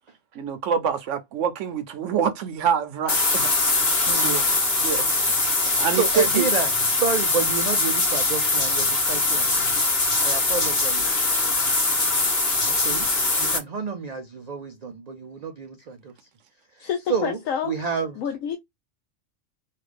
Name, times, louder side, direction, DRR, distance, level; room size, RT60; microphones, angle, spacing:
voice 1, 0.3-4.6 4.8-5.2 5.8-6.5, right 7 dB, 70° right, 0.9 m, -26 dB
sound 1, 3.1-13.6, left 2 dB, 50° left, 1.4 m, -22 dB
voice 2, 4.1-4.4 6.0-9.5 10.2-11.1 12.8-13.1 13.4-16.1 16.8-17.4 17.6-18.2, right 5 dB, 85° right, 0.3 m, -29 dB
voice 3, 16.8-17.7 18.2-18.6, left 8 dB, 90° left, 1.0 m, -28 dB
3.2 x 2.4 x 3.3 m
omnidirectional pair, 1.4 m